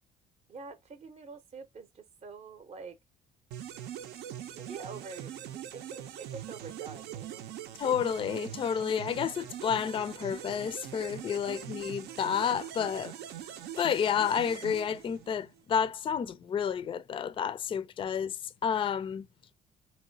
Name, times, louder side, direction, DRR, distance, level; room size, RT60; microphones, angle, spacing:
voice 1, 0.5-3.0 4.5-7.4 11.5-11.6, right 4 dB, 40° right, 0.7 m, -46 dB
sound 1, 3.5-15.6, right 10 dB, 80° right, 0.6 m, -42 dB
voice 2, 7.8-13.2 13.8-19.3, left 8 dB, 30° left, 0.4 m, -30 dB
3.1 x 2.9 x 2.6 m
cardioid pair, 110°, 17 cm